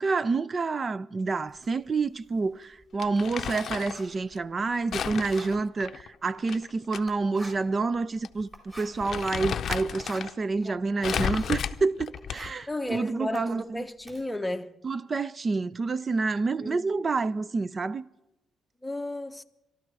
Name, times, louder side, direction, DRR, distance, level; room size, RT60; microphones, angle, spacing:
voice 1, 0.0-8.5 8.8-13.8 14.8-18.1, right 4 dB, 35° right, 0.5 m, -28 dB
Writing, 1.5-11.7 12.0-14.2, equal, 20° right, 4.0 m, -50 dB
Crumpling crinkling, 3.0-4.0 4.9-7.0 7.3-7.4 8.2-8.4 8.8-10.3 11.0-12.6, left 8 dB, 60° left, 0.6 m, -33 dB
voice 2, 12.7-14.8 16.6-16.8 18.8-19.4, left 1 dB, 10° left, 0.9 m, -33 dB
23.0 x 12.5 x 4.8 m
cardioid pair, 90°, 0 cm